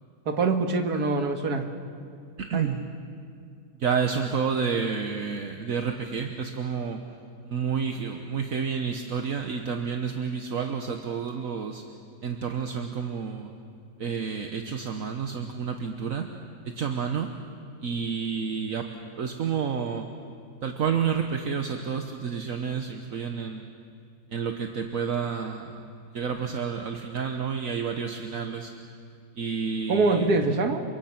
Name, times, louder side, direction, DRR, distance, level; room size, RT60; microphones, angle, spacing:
voice 1, 0.3-1.7 2.5-2.7 29.9-30.8, right 3 dB, 85° right, 5 dB, 2.2 m, -24 dB
voice 2, 2.4-2.9 3.8-7.0 7.4-11.8 12.2-13.5 14.0-16.3 16.8-17.3 17.8-20.1 20.6-23.7 24.3-25.7 26.1-28.7 29.4-30.3, right 6 dB, 60° right, 4 dB, 1.5 m, -30 dB
29.0 x 24.5 x 5.9 m, 2.3 s
omnidirectional pair, 1.6 m